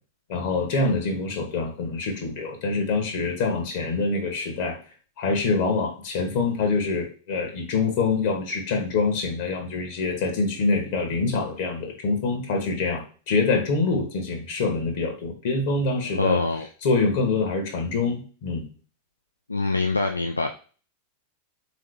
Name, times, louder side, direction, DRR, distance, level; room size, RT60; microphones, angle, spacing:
voice 1, 0.3-4.8 5.2-16.4 16.8-18.7, left 3 dB, 50° left, 3 dB, 1.1 m, -25 dB
voice 2, 16.0-16.7 19.5-20.5, left 3 dB, 80° left, 5 dB, 0.3 m, -24 dB
3.7 x 3.1 x 3.2 m, 0.39 s
figure-of-eight pair, 90°, 0 cm